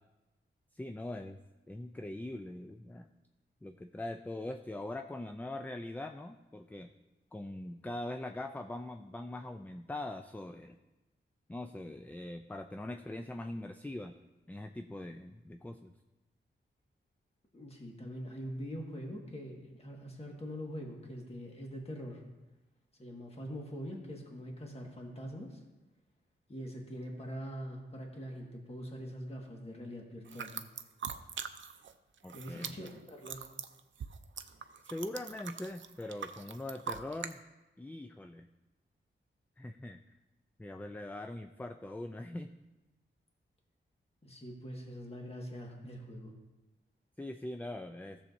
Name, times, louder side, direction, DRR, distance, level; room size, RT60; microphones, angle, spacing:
voice 1, 0.7-1.4 1.7-3.1 3.6-6.9 7.3-10.8 11.5-14.2 14.5-15.9 32.2-32.8 34.8-37.4 37.8-38.5 39.6-40.0 40.6-42.5 47.2-48.2, left 1 dB, 10° left, 7 dB, 0.3 m, -42 dB
voice 2, 17.5-22.2 23.0-25.6 26.5-30.6 32.3-33.4 44.2-46.3, equal, 30° left, 0 dB, 1.7 m, -43 dB
sound 1, 30.3-31.9 32.2-37.3, right 7 dB, 70° right, 0.5 m, -43 dB
15.5 x 7.0 x 2.6 m, 1.1 s
wide cardioid pair, 90°, 20 cm